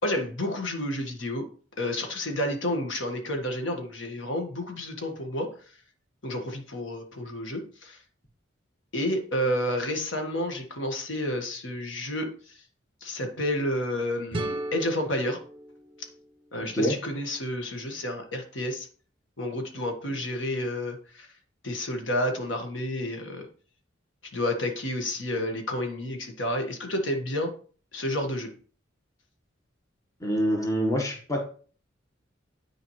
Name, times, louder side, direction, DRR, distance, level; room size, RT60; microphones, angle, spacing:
voice 1, 0.0-1.5 1.8-5.5 6.2-8.0 8.9-12.5 13.0-15.4 16.5-18.9 19.4-21.3 21.6-23.5 24.3-27.5 27.9-28.5, left 1 dB, 75° left, 4 dB, 1.6 m, -30 dB
sound 1, 14.3-17.2, right 1 dB, 25° right, 0.8 m, -37 dB
voice 2, 30.2-31.5, equal, 15° left, 2 dB, 1.2 m, -26 dB
10.0 x 4.9 x 3.1 m, 0.42 s
head